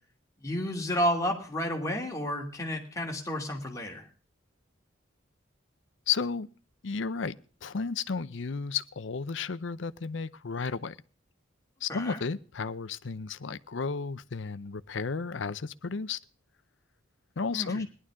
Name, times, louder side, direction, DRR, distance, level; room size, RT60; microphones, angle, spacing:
voice 1, 0.4-4.1 11.9-12.2 17.5-17.8, equal, 15° left, 2.7 m, -31 dB
voice 2, 6.1-6.5 6.8-11.0 11.8-16.2 17.4-17.9, left 5 dB, 65° left, 0.6 m, -33 dB
18.5 x 11.0 x 3.7 m
head